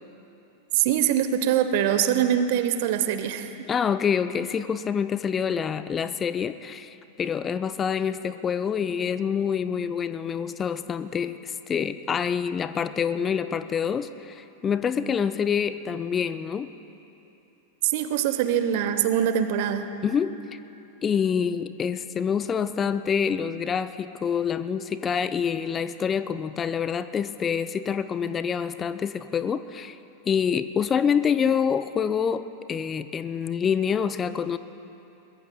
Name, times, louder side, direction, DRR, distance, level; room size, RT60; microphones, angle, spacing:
voice 1, 0.7-3.5 17.8-19.9, right 10 dB, 50° right, 10 dB, 0.8 m, -23 dB
voice 2, 3.7-16.7 20.0-20.3 21.0-30.0 30.3-34.6, left 7 dB, 20° left, 12 dB, 0.4 m, -26 dB
23.0 x 21.0 x 2.2 m, 2.9 s
figure-of-eight pair, 90°, 0 cm